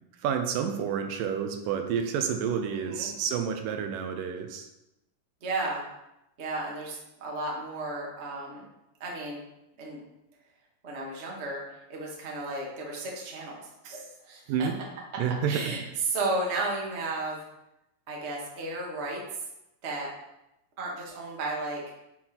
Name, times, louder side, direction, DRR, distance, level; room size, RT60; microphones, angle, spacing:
voice 1, 0.0-4.7 14.5-14.7 15.2-15.6, right 7 dB, 80° right, 6 dB, 2.3 m, -29 dB
voice 2, 2.7-3.1 5.4-5.8 6.4-8.6 9.0-9.4 9.8-10.0 10.8-11.6 11.9-14.7 15.5-17.4 18.1-19.2 19.8-20.1 20.8-21.8, right 2 dB, 35° right, -2 dB, 1.1 m, -33 dB
7.7 x 6.4 x 4.4 m, 0.89 s
omnidirectional pair, 3.9 m